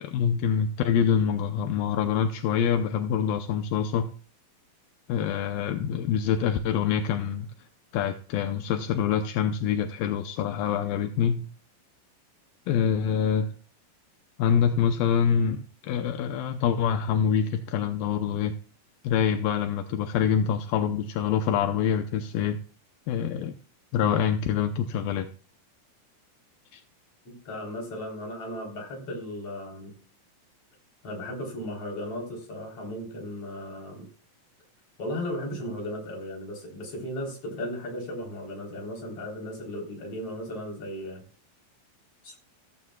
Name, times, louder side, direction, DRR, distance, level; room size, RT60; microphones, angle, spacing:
voice 1, 0.0-4.1 5.1-7.5 7.9-11.5 12.7-13.5 14.4-18.5 19.0-22.6 23.1-23.6 23.9-25.3 26.7-26.8, left 8 dB, 80° left, 2.5 m, -25 dB
voice 2, 27.3-29.9 31.0-34.1 35.0-41.2 42.2-42.4, left 1 dB, 40° left, 4.5 m, -36 dB
15.5 x 14.5 x 2.3 m
omnidirectional pair, 4.1 m